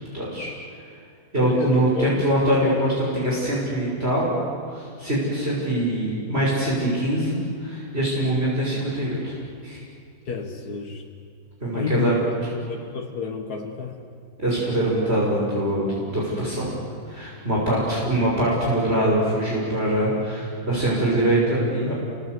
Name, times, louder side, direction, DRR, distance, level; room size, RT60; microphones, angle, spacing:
voice 1, 0.1-0.5 1.3-4.3 4.7-9.8 11.6-12.3 14.4-16.7 17.1-22.0, right 1 dB, 40° right, -5 dB, 6.2 m, -23 dB
voice 2, 1.4-2.3 10.3-11.0 11.7-12.1 12.7-14.1, left 6 dB, 90° left, 2 dB, 2.3 m, -30 dB
29.5 x 24.0 x 8.1 m, 2.2 s
omnidirectional pair, 1.6 m